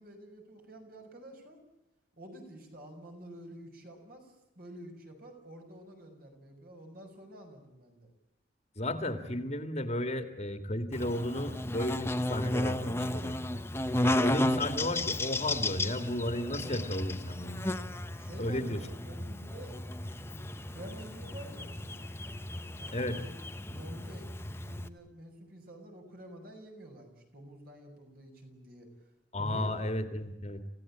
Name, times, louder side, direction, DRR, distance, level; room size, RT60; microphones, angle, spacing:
voice 1, 0.0-1.6 2.2-8.1 18.2-19.7 20.2-22.1 22.8-23.3 23.7-28.9 29.4-29.7, right 1 dB, 50° right, 3 dB, 6.4 m, -49 dB
voice 2, 8.8-13.4 14.0-17.6 18.4-18.8 22.9-23.2 29.3-30.6, left 1 dB, 35° left, 9 dB, 2.0 m, -34 dB
Buzz, 10.9-24.9, left 1 dB, 15° left, 1.0 m, -34 dB
28.5 x 16.5 x 8.7 m, 0.96 s
head